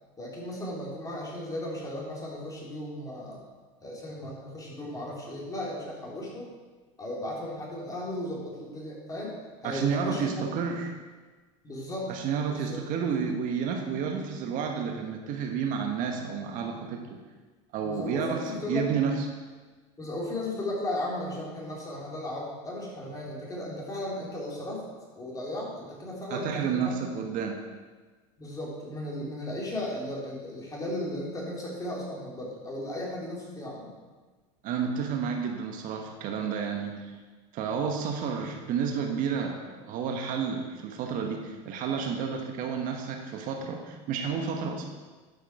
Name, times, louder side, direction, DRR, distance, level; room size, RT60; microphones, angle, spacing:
voice 1, 0.2-3.4 3.8-6.5 7.0-9.4 9.6-10.4 11.6-12.1 12.5-12.8 17.8-18.8 20.0-24.8 25.1-26.9 28.4-33.9, left 1 dB, 20° left, -4 dB, 3.7 m, -35 dB
voice 2, 9.6-10.9 12.1-17.2 17.7-19.2 26.3-27.6 34.6-37.1 37.5-44.9, right 6 dB, 55° right, 3 dB, 1.3 m, -31 dB
12.0 x 6.5 x 4.9 m, 1.3 s
supercardioid pair, 100°, 17 cm